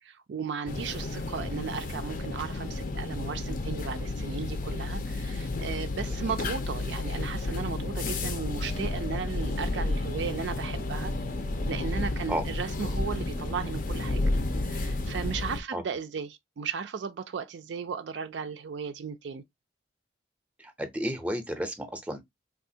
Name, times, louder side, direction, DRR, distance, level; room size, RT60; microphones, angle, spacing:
voice 1, 0.0-11.1 11.6-14.2 14.6-19.4, right 6 dB, 65° right, 0.4 m, -36 dB
sound 1, 0.7-15.6, left 2 dB, 45° left, 0.5 m, -31 dB
voice 2, 20.6-22.2, equal, 5° right, 0.6 m, -33 dB
3.4 x 2.4 x 2.7 m
head